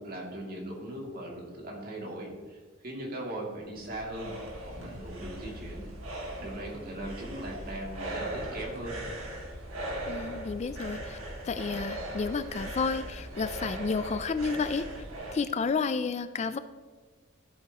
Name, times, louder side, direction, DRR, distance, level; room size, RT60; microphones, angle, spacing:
voice 1, 0.0-4.4 4.8-5.9 6.4-9.1, right 1 dB, 45° right, -2 dB, 2.5 m, -39 dB
sound 1, 3.5-15.4, right 1 dB, 85° right, 2.2 m, -39 dB
voice 2, 10.1-11.2 11.4-14.9 15.3-16.6, left 4 dB, 35° left, 12 dB, 0.3 m, -31 dB
13.0 x 7.9 x 3.0 m, 1.4 s
head